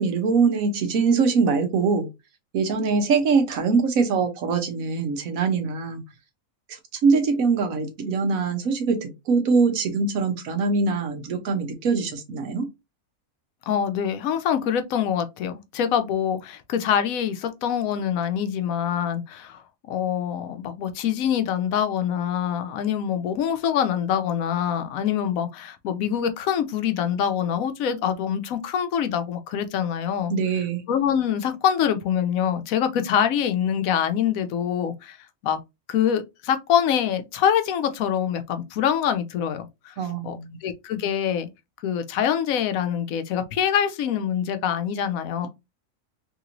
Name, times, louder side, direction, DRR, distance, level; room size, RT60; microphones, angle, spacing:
voice 1, 0.0-2.1 2.5-6.0 7.0-12.7 30.3-30.8 40.0-40.6, right 4 dB, 85° right, 1.2 m, -23 dB
voice 2, 13.7-19.6 19.9-30.3 30.9-35.2 35.4-35.6 35.9-39.9 40.2-41.5 41.8-45.5, left 9 dB, 85° left, 1.0 m, -25 dB
3.3 x 2.9 x 2.5 m
omnidirectional pair, 1.4 m